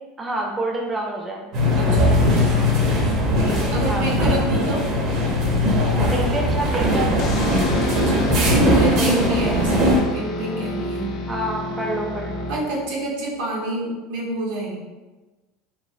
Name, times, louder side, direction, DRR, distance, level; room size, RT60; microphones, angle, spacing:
voice 1, 0.2-1.4 3.9-4.1 6.1-7.3 9.0-9.1 9.4-9.6 11.3-12.4, right 2 dB, 15° right, 0 dB, 0.4 m, -27 dB
sound 1, 1.5-10.0, left 1 dB, 55° right, 0.6 m, -19 dB
voice 2, 1.7-4.8 7.6-11.1 12.5-14.7, right 2 dB, 85° right, -3 dB, 0.8 m, -28 dB
sound 2, 7.2-13.1, left 2 dB, 50° left, 0.4 m, -30 dB
3.0 x 2.0 x 2.5 m, 1.2 s
supercardioid pair, 120°, 0 cm